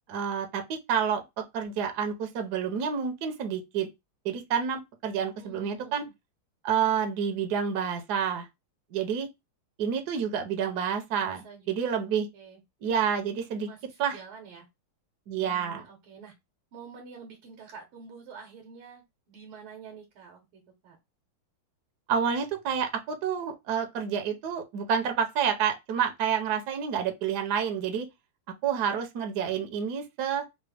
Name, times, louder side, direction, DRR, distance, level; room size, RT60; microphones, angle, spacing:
voice 1, 0.1-3.9 4.2-6.1 6.6-8.5 8.9-9.3 9.8-12.3 12.8-13.7 14.0-14.2 15.3-15.8 22.1-28.1 28.6-30.4, right 7 dB, 65° right, 1.1 m, -29 dB
voice 2, 5.4-5.9 11.2-11.7 12.0-12.1 12.3-12.6 13.7-14.7 15.3-16.3 16.7-21.0, right 5 dB, 85° right, 1.8 m, -48 dB
4.0 x 2.1 x 3.2 m
omnidirectional pair, 2.3 m